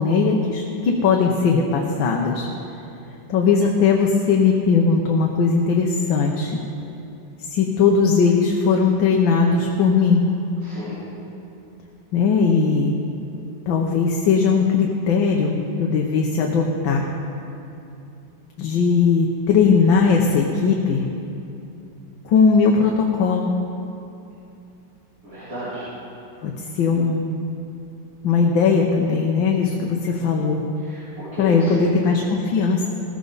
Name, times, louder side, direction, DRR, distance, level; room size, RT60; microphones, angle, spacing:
voice 1, 0.0-2.5 3.3-6.6 7.5-10.2 12.1-12.9 13.7-17.1 18.6-21.1 22.3-23.5 26.4-27.4 28.2-30.6 31.4-32.9, left 5 dB, 75° left, 0 dB, 1.7 m, -19 dB
voice 2, 10.6-11.0 25.2-25.8 30.8-31.9, right 1 dB, 40° right, -13 dB, 4.5 m, -32 dB
17.0 x 14.5 x 4.0 m, 2.8 s
omnidirectional pair, 2.2 m